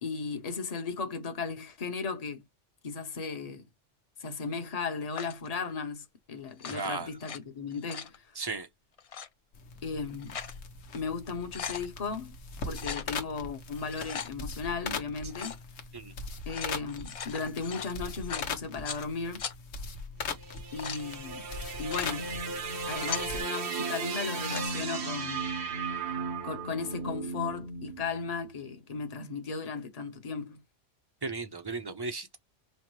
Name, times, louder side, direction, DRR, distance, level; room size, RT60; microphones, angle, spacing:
voice 1, 0.0-2.4 2.8-3.7 4.2-8.3 9.8-10.4 10.9-12.4 12.7-15.6 16.5-19.4 20.7-21.4 21.8-22.3 22.8-25.5 26.4-30.6, left 5 dB, 35° left, 0.9 m, -36 dB
sound 1, 5.1-5.5 6.5-7.4 7.7-8.2 9.0-9.3 10.0-10.6 11.0-11.1 11.3-11.9 12.7-13.1 13.8-14.3 15.3-15.6 16.3-19.1 19.4-19.5 20.4-21.0 21.7-22.1 22.7-23.3 24.2-24.7, left 7 dB, 65° left, 0.3 m, -39 dB
voice 2, 6.7-7.1 8.4-8.7 15.9-16.1 31.2-32.4, right 3 dB, 25° right, 0.6 m, -35 dB
sound 2, 9.5-23.4, left 4 dB, 85° left, 1.2 m, -41 dB
sound 3, 20.2-28.5, right 4 dB, 65° right, 1.1 m, -36 dB
5.4 x 2.1 x 3.0 m
omnidirectional pair, 1.3 m